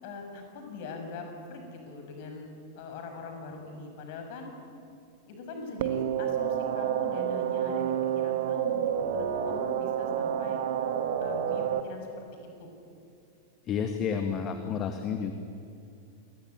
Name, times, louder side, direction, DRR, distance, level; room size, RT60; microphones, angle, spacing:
voice 1, 0.0-2.5 2.7-4.5 5.3-10.6 11.2-12.7 14.1-14.5, left 3 dB, 50° left, 4 dB, 6.4 m, -42 dB
sound 1, 5.8-11.8, right 9 dB, 55° right, 1.7 m, -29 dB
voice 2, 13.7-15.3, left 7 dB, 30° left, 7 dB, 1.9 m, -30 dB
28.5 x 21.0 x 9.4 m, 2.5 s
figure-of-eight pair, 90°, 0 cm